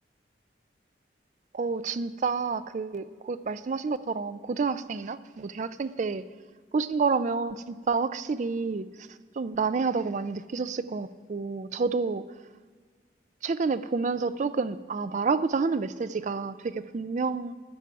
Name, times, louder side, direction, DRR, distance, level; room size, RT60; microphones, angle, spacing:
voice 1, 1.5-6.2 6.7-9.1 9.3-12.2 13.4-17.5, right 4 dB, 40° right, 13 dB, 0.4 m, -29 dB
15.0 x 10.5 x 4.7 m, 1.5 s
head